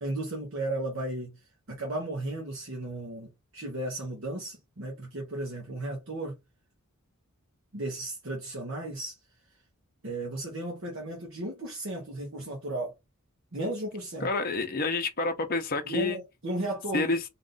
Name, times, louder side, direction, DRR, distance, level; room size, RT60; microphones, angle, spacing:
voice 1, 0.0-1.4 1.7-6.3 7.7-9.2 10.0-12.9 13.5-14.3 15.9-17.1, right 1 dB, 60° right, 1.2 m, -34 dB
voice 2, 14.2-16.2 16.9-17.2, left 3 dB, 45° left, 0.8 m, -28 dB
3.7 x 2.5 x 3.9 m
head